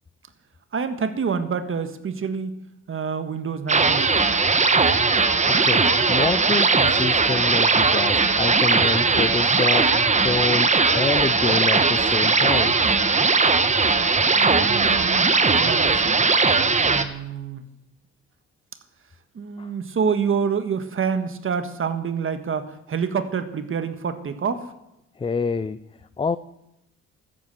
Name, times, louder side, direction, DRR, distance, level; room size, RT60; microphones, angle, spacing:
voice 1, 0.7-4.1 14.3-16.2 16.7-17.6 19.3-24.7, right 6 dB, 45° right, 9 dB, 1.5 m, -27 dB
sound 1, 3.7-17.0, right 4 dB, 25° right, 1.1 m, -19 dB
voice 2, 5.4-12.8 19.6-19.7 25.2-25.8 26.2-26.4, left 5 dB, 20° left, 14 dB, 0.5 m, -27 dB
13.5 x 9.9 x 7.8 m, 0.85 s
cardioid pair, 90°, 30 cm